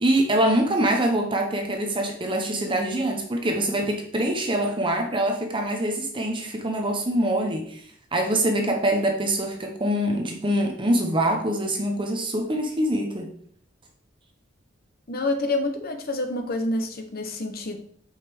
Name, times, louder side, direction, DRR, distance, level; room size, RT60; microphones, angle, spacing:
voice 1, 0.0-7.9 8.1-13.3, right 1 dB, 25° right, 3 dB, 0.8 m, -24 dB
voice 2, 15.1-17.8, left 2 dB, 50° left, 6 dB, 0.9 m, -27 dB
7.7 x 5.2 x 3.5 m, 0.62 s
head